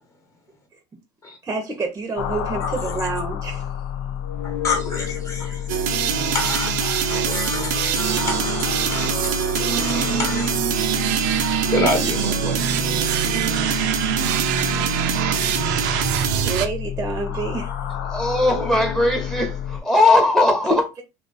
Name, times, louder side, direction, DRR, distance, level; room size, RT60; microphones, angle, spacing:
voice 1, 1.4-3.7 16.4-17.9, right 4 dB, 20° right, 0.7 m, -28 dB
sound 1, 2.2-19.8, left 9 dB, 85° left, 0.6 m, -30 dB
voice 2, 4.4-5.7 6.3-10.5 11.7-12.6 12.8-13.1, left 3 dB, 30° left, 1.1 m, -28 dB
sound 2, 5.7-16.7, right 9 dB, 75° right, 0.5 m, -23 dB
voice 3, 17.9-20.9, left 2 dB, 5° left, 1.0 m, -19 dB
2.9 x 2.3 x 3.9 m
supercardioid pair, 100°, 10 cm